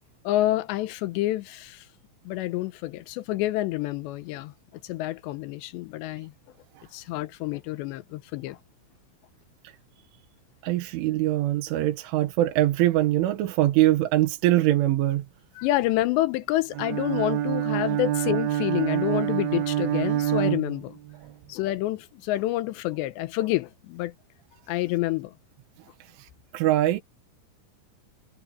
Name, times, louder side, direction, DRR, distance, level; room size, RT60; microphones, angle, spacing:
voice 1, 0.2-1.9 2.3-4.5 4.8-6.3 6.9-8.6 15.6-21.0 21.5-24.1 24.7-25.3, left 16 dB, 80° left, 2.8 m, -28 dB
voice 2, 10.6-15.3 26.0-27.0, right 15 dB, 85° right, 4.0 m, -23 dB
Bowed string instrument, 16.7-21.3, right 12 dB, 65° right, 3.0 m, -26 dB
omnidirectional pair, 5.5 m